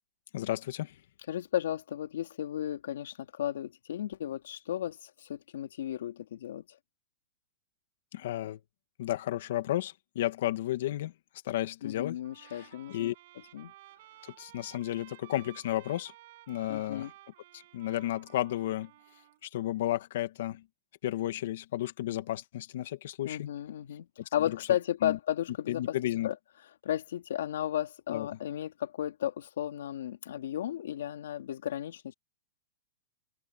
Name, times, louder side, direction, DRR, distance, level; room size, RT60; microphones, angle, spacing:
voice 1, 0.3-1.0 8.1-8.6 9.0-11.1 11.5-12.2 12.4-13.1 14.4-16.1 16.5-17.1 17.5-18.9 19.4-20.6 21.0-23.5 24.5-24.6 25.0-25.2 25.7-26.3 28.1-28.3, left 14 dB, 65° left, 1.9 m, -33 dB
voice 2, 1.3-6.6 11.8-13.1 13.5-13.7 16.7-17.1 23.2-24.1 24.3-26.0 26.2-26.3 26.8-32.1, left 11 dB, 80° left, 3.1 m, -34 dB
Trumpet, 12.2-19.4, right 16 dB, 55° right, 6.5 m, -55 dB
supercardioid pair, 160°, 0 cm